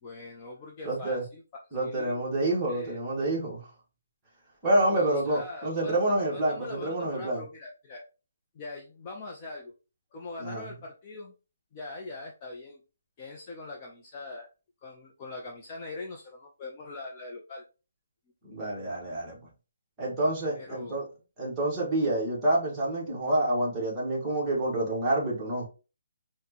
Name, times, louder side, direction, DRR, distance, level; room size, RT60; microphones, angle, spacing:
voice 1, 0.0-1.4 1.8-2.2 2.7-3.0 4.8-8.1 8.5-9.7 10.1-11.3 11.7-12.8 13.2-14.5 14.8-17.6 20.6-21.0, left 2 dB, 20° left, 0 dB, 0.4 m, -42 dB
voice 2, 0.8-1.2 1.7-3.7 4.6-7.4 10.4-10.6 18.4-19.4 20.0-21.0 21.4-25.7, right 1 dB, 10° right, -6 dB, 0.9 m, -28 dB
4.1 x 2.0 x 2.8 m, 0.32 s
hypercardioid pair, 175°, 0 cm